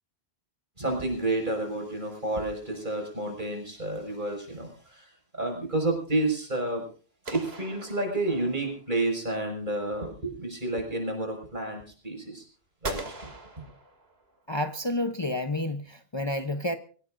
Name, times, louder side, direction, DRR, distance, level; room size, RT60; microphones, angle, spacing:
voice 1, 0.8-6.8 7.3-12.4 12.8-13.3, right 2 dB, 50° right, 6.0 m, -30 dB
sound 1, 7.3-8.7 12.8-14.4, right 2 dB, 75° right, 2.9 m, -40 dB
voice 2, 14.5-16.8, left 1 dB, 25° left, 0.8 m, -30 dB
25.0 x 17.5 x 2.6 m
omnidirectional pair, 1.1 m